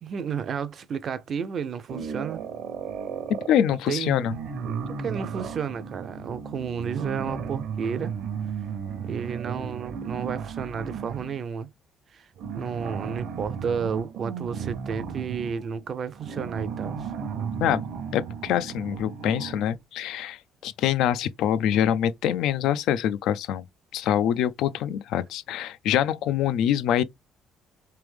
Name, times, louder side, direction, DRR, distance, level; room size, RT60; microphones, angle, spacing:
voice 1, 0.0-2.4 3.9-4.3 5.0-8.2 9.0-11.7 12.1-17.1, right 6 dB, 35° right, 0.5 m, -32 dB
sound 1, 1.9-3.6 4.2-11.4 12.4-19.8, right 6 dB, 65° right, 0.8 m, -34 dB
voice 2, 3.5-4.3 17.5-17.8 18.1-23.6 23.9-27.0, left 10 dB, 75° left, 0.3 m, -25 dB
3.4 x 3.3 x 3.3 m
cardioid pair, 165°, 0 cm